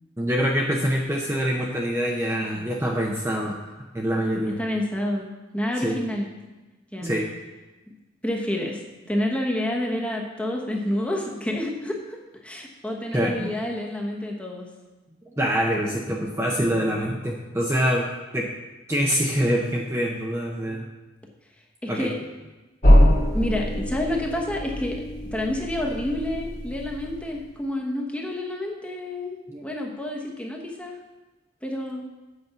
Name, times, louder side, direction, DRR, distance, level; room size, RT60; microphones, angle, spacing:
voice 1, 0.2-4.6 5.8-6.0 7.0-7.3 13.1-13.5 15.3-18.1 18.3-18.5 18.9-20.8 21.9-22.1 29.5-29.6, equal, 15° right, -2 dB, 0.7 m, -25 dB
voice 2, 4.5-6.3 6.9-7.1 8.2-8.8 9.1-14.7 21.8-22.1 23.3-25.0 25.3-31.0 31.6-32.0, left 1 dB, 5° left, -1 dB, 1.1 m, -29 dB
sound 1, 22.8-27.5, equal, 35° left, 1.7 m, -22 dB
8.1 x 5.3 x 6.9 m, 1.1 s
head